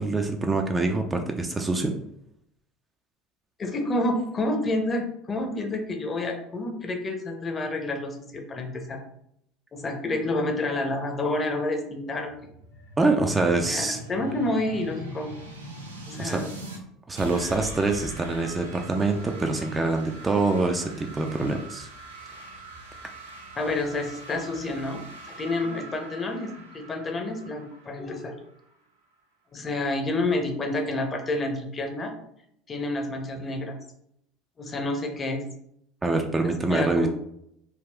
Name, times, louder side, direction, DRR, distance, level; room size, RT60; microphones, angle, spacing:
voice 1, 0.0-2.0 13.0-14.0 16.2-16.4 17.1-21.9 36.0-37.1, right 3 dB, 20° right, 4 dB, 0.3 m, -25 dB
voice 2, 3.6-9.0 9.7-12.3 13.7-15.3 16.1-16.5 23.6-28.4 29.5-32.1 32.7-33.8 34.6-35.4 36.6-37.1, left 2 dB, 30° left, 3 dB, 0.6 m, -29 dB
sound 1, 12.2-16.8 17.2-28.7, right 1 dB, 85° right, 0.5 m, -42 dB
3.5 x 2.3 x 2.2 m, 0.74 s
figure-of-eight pair, 70°, 0 cm